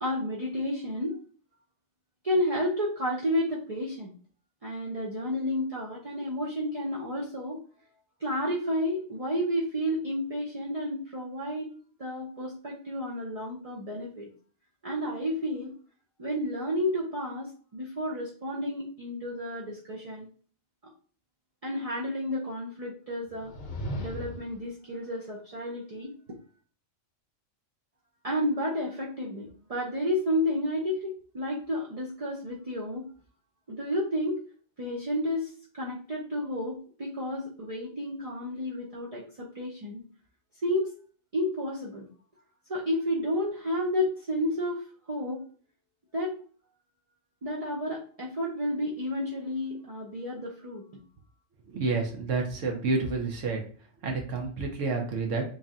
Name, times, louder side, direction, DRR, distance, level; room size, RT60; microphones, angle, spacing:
voice 1, 0.0-1.2 2.2-4.1 4.6-7.6 8.2-11.7 12.0-14.3 14.8-15.8 16.2-20.3 21.6-23.5 24.0-26.1 28.2-33.1 33.7-34.4 34.8-40.0 40.6-40.9 41.3-42.1 42.7-44.8 45.1-45.5 46.1-46.4 47.4-50.8, left 1 dB, 40° right, -4 dB, 0.5 m, -31 dB
sound 1, 23.3-24.6, equal, 60° left, 1.0 m, -36 dB
voice 2, 51.7-53.6 54.0-55.4, right 4 dB, 70° right, 2 dB, 1.3 m, -29 dB
3.2 x 2.7 x 3.5 m, 0.43 s
omnidirectional pair, 1.4 m